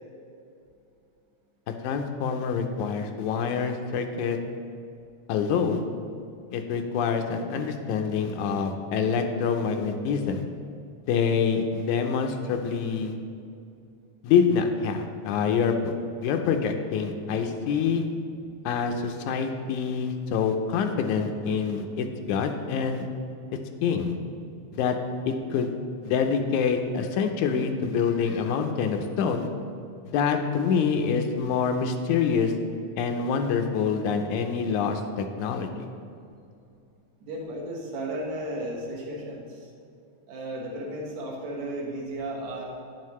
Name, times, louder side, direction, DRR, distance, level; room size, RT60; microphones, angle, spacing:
voice 1, 1.7-4.4 5.3-5.8 6.5-10.4 11.1-13.1 14.2-15.9 16.2-18.0 18.7-23.1 23.8-24.1 24.7-25.0 25.3-25.7 26.0-29.5 30.0-32.5 33.0-35.7, left 6 dB, 85° left, 5 dB, 2.0 m, -26 dB
voice 2, 37.2-39.7 40.3-42.7, right 1 dB, 65° right, -1 dB, 2.4 m, -34 dB
10.0 x 7.4 x 3.1 m, 2.5 s
omnidirectional pair, 3.5 m